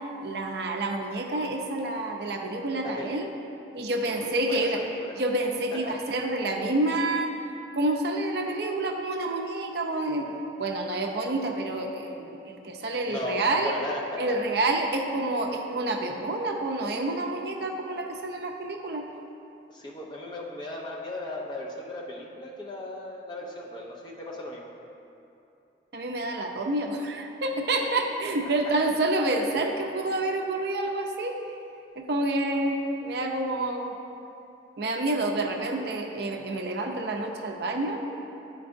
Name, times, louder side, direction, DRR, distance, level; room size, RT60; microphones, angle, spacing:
voice 1, 0.2-3.3 3.7-4.8 5.2-7.3 7.7-10.3 10.6-13.7 14.2-19.0 25.9-31.3 32.0-33.9 34.8-38.0, right 2 dB, 55° right, 2 dB, 0.5 m, -28 dB
voice 2, 4.0-5.1 5.7-6.0 13.0-14.4 19.7-24.7 28.4-28.5 28.8-28.9, left 2 dB, 25° left, -3 dB, 0.6 m, -37 dB
9.4 x 4.5 x 2.6 m, 2.8 s
head